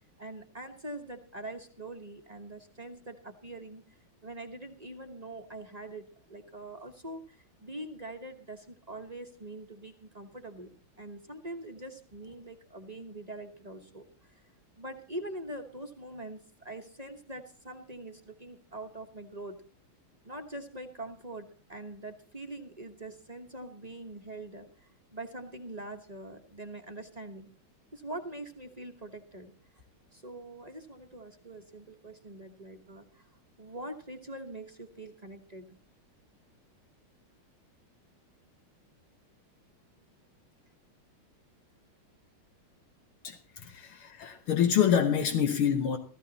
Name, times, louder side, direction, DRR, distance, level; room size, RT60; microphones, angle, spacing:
voice 1, 0.2-14.4 14.8-19.6 20.2-27.5 27.9-29.8 30.1-33.3 33.6-35.7, right 2 dB, 25° right, 1.0 m, -44 dB
voice 2, 43.2-46.0, left 8 dB, 85° left, 2.1 m, -27 dB
15.0 x 14.5 x 4.1 m
omnidirectional pair, 2.3 m